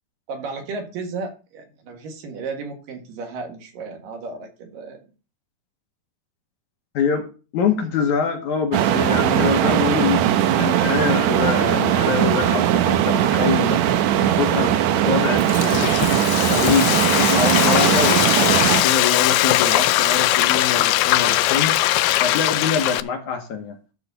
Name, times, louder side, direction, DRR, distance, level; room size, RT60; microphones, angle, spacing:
voice 1, 0.3-5.1, right 4 dB, 70° right, 3.1 m, -34 dB
voice 2, 6.9-7.3 7.5-13.8 14.3-14.8 15.1-16.0 16.5-21.8 22.2-23.8, left 6 dB, 65° left, 2.2 m, -24 dB
sound 1, 8.7-18.8, right 11 dB, 85° right, 1.6 m, -19 dB
Frying (food), 15.1-23.0, left 15 dB, 85° left, 1.9 m, -20 dB
12.0 x 4.1 x 6.7 m
omnidirectional pair, 4.2 m